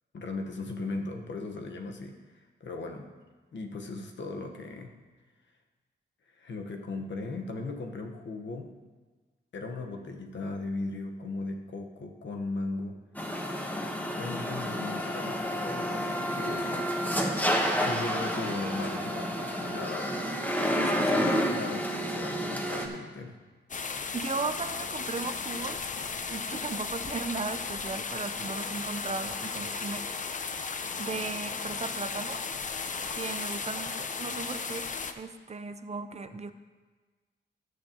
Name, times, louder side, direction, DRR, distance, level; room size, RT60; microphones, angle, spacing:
voice 1, 0.1-3.1 3.5-4.9 6.4-8.7 9.5-13.0 14.1-16.9 17.8-20.3 21.5-23.3, left 3 dB, 75° left, 3 dB, 1.2 m, -37 dB
sound 1, 13.1-22.9, equal, 10° left, 1.1 m, -30 dB
voice 2, 20.8-21.4 24.1-30.0 30.4-32.4 33.1-34.9 35.2-36.5, right 4 dB, 35° right, 10 dB, 0.6 m, -37 dB
sound 2, 23.7-35.1, left 5 dB, 40° left, 0.6 m, -35 dB
19.5 x 6.6 x 2.9 m, 1.4 s
wide cardioid pair, 100°, 19 cm